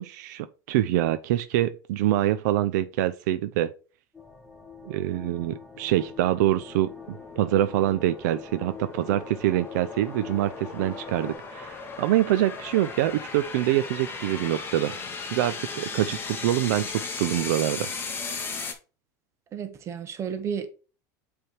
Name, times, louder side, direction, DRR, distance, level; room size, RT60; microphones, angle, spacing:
voice 1, 0.0-3.7 4.8-14.9 15.2-17.9, right 13 dB, 80° right, 0.5 m, -25 dB
sound 1, 4.1-11.3, left 5 dB, 5° left, 2.0 m, -44 dB
sound 2, 4.2-18.7, left 4 dB, 25° left, 1.4 m, -37 dB
voice 2, 19.5-20.7, right 7 dB, 30° right, 1.3 m, -32 dB
7.9 x 3.5 x 4.4 m
supercardioid pair, 135°, 9 cm